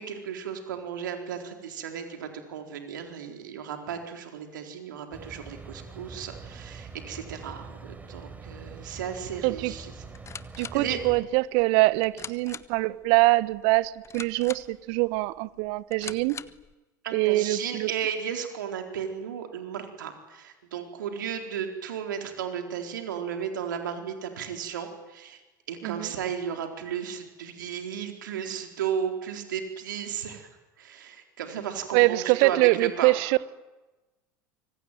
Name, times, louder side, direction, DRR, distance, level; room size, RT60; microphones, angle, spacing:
voice 1, 0.0-9.9 10.7-11.0 17.0-25.4 25.7-30.5 30.8-33.1, right 8 dB, 75° right, 4.2 m, -34 dB
sound 1, 5.1-11.2, right 4 dB, 15° right, 4.0 m, -44 dB
voice 2, 9.4-9.7 10.6-16.4 17.1-17.9 25.8-26.1 31.9-33.4, right 21 dB, 55° right, 1.3 m, -24 dB
sound 2, 10.0-16.7, left 6 dB, 25° left, 1.3 m, -44 dB
25.5 x 24.0 x 9.3 m
hypercardioid pair, 80°, 11 cm